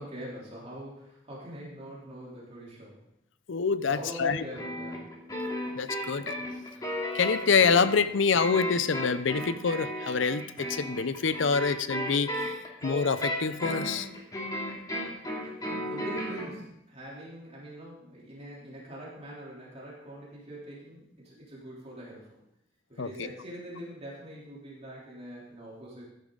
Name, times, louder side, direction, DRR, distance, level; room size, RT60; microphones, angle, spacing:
voice 1, 0.0-3.0 3.8-5.1 15.4-22.3 22.9-26.0, equal, 30° right, -5 dB, 3.5 m, -43 dB
voice 2, 3.5-4.4 5.8-6.3 7.1-12.5 12.8-14.1 23.0-23.3, left 5 dB, 65° left, 14 dB, 0.6 m, -26 dB
sound 1, 4.6-16.5, equal, 20° left, 2.5 m, -34 dB
14.0 x 10.5 x 3.9 m, 0.81 s
head